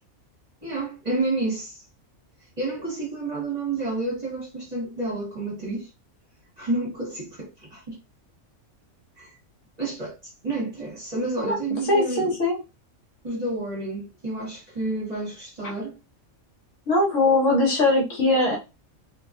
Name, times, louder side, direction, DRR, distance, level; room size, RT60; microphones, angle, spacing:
voice 1, 0.6-1.8 2.6-5.9 6.6-8.0 9.2-9.3 9.8-10.2 10.4-12.4 13.2-16.0, right 2 dB, 35° right, 1.0 m, -30 dB
voice 2, 11.9-12.6 16.9-18.6, left 2 dB, 65° left, 1.2 m, -21 dB
2.6 x 2.2 x 2.4 m
omnidirectional pair, 1.5 m